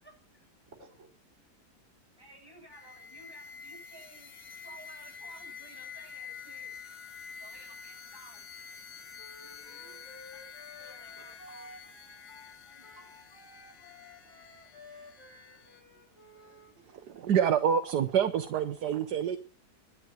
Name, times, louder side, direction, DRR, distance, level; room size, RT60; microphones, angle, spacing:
voice 1, 0.0-0.5 2.2-6.7 7.4-8.5 10.8-11.7 12.6-13.1, right 1 dB, 15° right, 8.0 m, -55 dB
voice 2, 0.7-1.1 9.4-10.1 11.0-11.3 15.7-17.2, right 3 dB, 45° right, 4.3 m, -60 dB
sound 1, 2.7-15.8, left 6 dB, 85° left, 2.1 m, -48 dB
Wind instrument woodwind instrument, 9.2-16.7, left 2 dB, 50° left, 4.7 m, -53 dB
voice 3, 17.1-19.4, right 8 dB, 85° right, 1.6 m, -27 dB
12.0 x 9.4 x 7.7 m
omnidirectional pair, 1.7 m